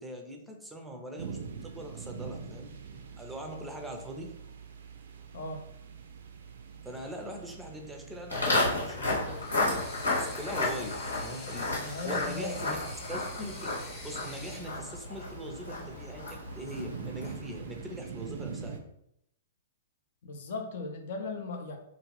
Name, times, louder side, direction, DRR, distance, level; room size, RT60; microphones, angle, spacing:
voice 1, 0.0-2.7 3.2-4.4 6.8-9.9 10.2-12.8 13.1-18.8, right 1 dB, 5° right, 2 dB, 0.5 m, -42 dB
sound 1, 1.2-18.8, right 6 dB, 65° right, 0.4 m, -45 dB
voice 2, 5.3-5.7 11.8-12.6 20.2-21.8, left 3 dB, 60° left, 4 dB, 0.5 m, -37 dB
Walk footsteps, 8.3-17.5, left 2 dB, 90° left, 1.3 m, -33 dB
sound 2, 9.2-14.8, left 2 dB, 25° left, 0.8 m, -46 dB
2.4 x 2.4 x 3.1 m, 0.77 s
figure-of-eight pair, 115°, 0 cm